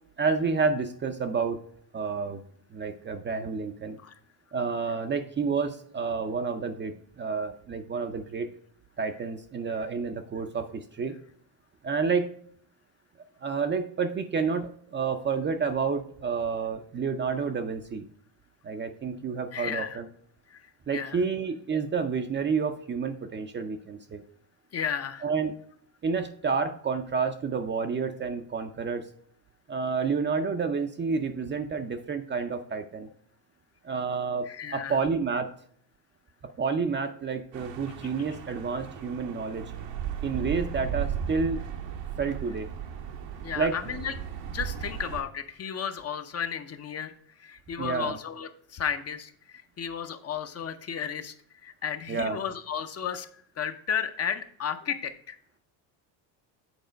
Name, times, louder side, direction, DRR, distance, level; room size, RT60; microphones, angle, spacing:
voice 1, 0.2-1.6 1.9-2.4 2.7-4.0 4.5-8.5 9.0-11.1 11.8-12.3 13.4-18.1 18.6-20.1 20.9-24.2 25.2-25.5 26.0-29.1 29.7-33.1 33.8-35.5 36.6-39.6 40.2-41.6 42.2-42.7 43.6-43.8 47.8-48.2 52.1-52.4, right 5 dB, 25° right, 8 dB, 0.5 m, -29 dB
voice 2, 19.5-20.0 20.5-20.6 20.9-21.2 24.7-25.2 34.4-35.0 43.4-44.1 44.5-47.1 47.4-51.3 51.6-55.4, left 8 dB, 35° left, 8 dB, 0.6 m, -33 dB
sound 1, 37.5-45.2, right 8 dB, 75° right, 1.1 m, -36 dB
8.0 x 4.2 x 5.0 m, 0.62 s
cardioid pair, 125°, 44 cm